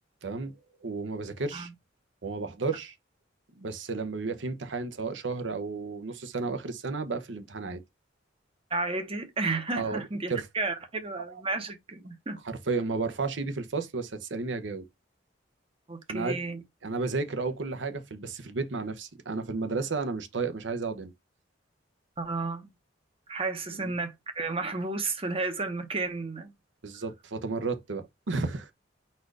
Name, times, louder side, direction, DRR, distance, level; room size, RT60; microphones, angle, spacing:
voice 1, 0.2-0.5 0.8-1.7 2.2-2.9 3.6-7.8 9.8-10.0 10.3-10.5 12.4-14.8 16.1-16.4 16.8-21.1 23.7-23.9 26.8-28.7, right 4 dB, 80° right, 0.9 m, -32 dB
voice 2, 8.7-12.4 15.9-16.6 22.2-22.7 23.3-26.5, right 3 dB, 30° right, 1.0 m, -32 dB
4.3 x 2.6 x 4.7 m
head